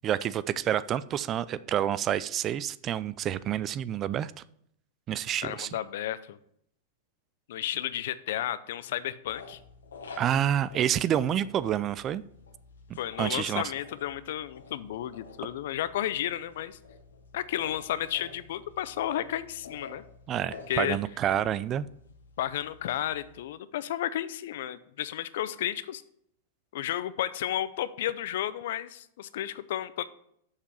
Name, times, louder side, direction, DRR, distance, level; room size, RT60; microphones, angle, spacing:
voice 1, 0.0-4.3 5.1-5.7 10.2-12.2 13.2-13.6 20.3-21.9, right 10 dB, 35° right, 17 dB, 0.4 m, -28 dB
voice 2, 5.4-6.4 7.5-9.6 13.0-16.8 17.3-20.0 20.7-21.0 22.4-26.0 26.7-30.0, left 12 dB, 70° left, 15 dB, 0.5 m, -32 dB
sound 1, 9.2-23.4, left 4 dB, 90° left, 1.3 m, -49 dB
6.7 x 5.8 x 5.6 m, 0.70 s
hypercardioid pair, 120°, 0 cm